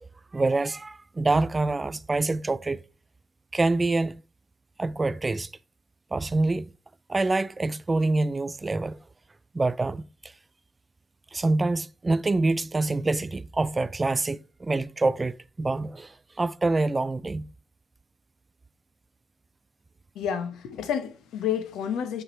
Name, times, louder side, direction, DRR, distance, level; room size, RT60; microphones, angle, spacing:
voice 1, 0.3-2.8 3.5-4.2 4.8-5.5 6.1-6.7 7.1-9.0 9.5-10.3 11.3-17.5, right 3 dB, 25° right, 0.4 m, -26 dB
voice 2, 20.1-22.2, left 8 dB, 85° left, 1.0 m, -30 dB
8.8 x 3.4 x 4.3 m
cardioid pair, 85°, 0 cm